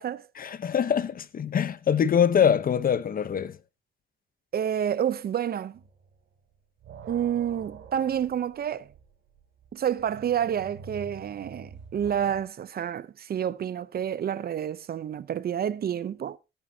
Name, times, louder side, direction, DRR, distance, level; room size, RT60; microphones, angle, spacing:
voice 1, 0.4-3.6, left 8 dB, 45° left, 0.9 m, -24 dB
voice 2, 4.5-5.8 7.1-8.9 9.7-16.4, right 9 dB, 50° right, 0.7 m, -29 dB
sound 1, 5.7-6.2 6.5-12.4, right 5 dB, 70° right, 4.0 m, -47 dB
17.0 x 9.3 x 2.8 m
cardioid pair, 90°, 20 cm